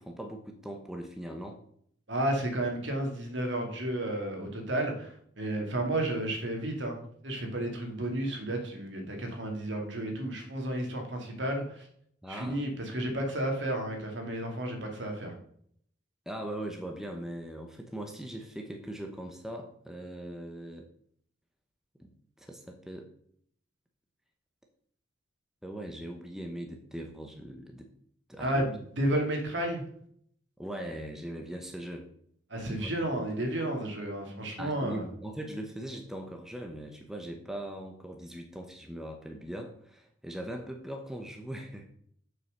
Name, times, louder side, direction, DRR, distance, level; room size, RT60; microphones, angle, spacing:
voice 1, 0.0-1.6 12.2-12.6 16.3-20.9 22.0-22.1 22.4-23.1 25.6-27.9 28.3-28.8 30.6-32.1 32.7-33.3 34.6-41.9, right 1 dB, ahead, 3 dB, 0.9 m, -40 dB
voice 2, 2.1-11.9 12.3-15.3 28.4-29.8 32.5-35.1, right 1 dB, 70° right, 2 dB, 2.5 m, -32 dB
7.8 x 5.7 x 6.6 m, 0.65 s
head